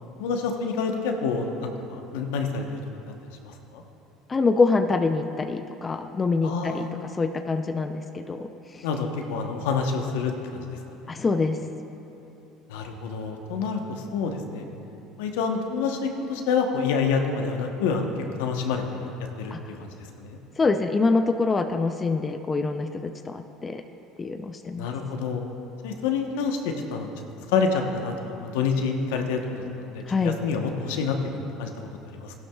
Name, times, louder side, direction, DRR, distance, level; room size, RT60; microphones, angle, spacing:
voice 1, 0.2-2.8 3.4-3.8 6.4-6.9 8.8-11.1 12.7-14.6 15.2-18.1 18.4-19.1 19.4-19.5 19.8-19.9 20.2-20.4 24.8-25.4 25.8-27.1 27.5-31.7 32.1-32.3, left 5 dB, 80° left, 3 dB, 1.0 m, -28 dB
voice 2, 4.3-8.9 11.1-11.6 19.5-19.6 20.6-23.8 24.2-24.9 30.1-30.4, left 3 dB, 25° left, 7 dB, 0.5 m, -25 dB
15.5 x 12.0 x 2.4 m, 2.9 s
hypercardioid pair, 80°, 0 cm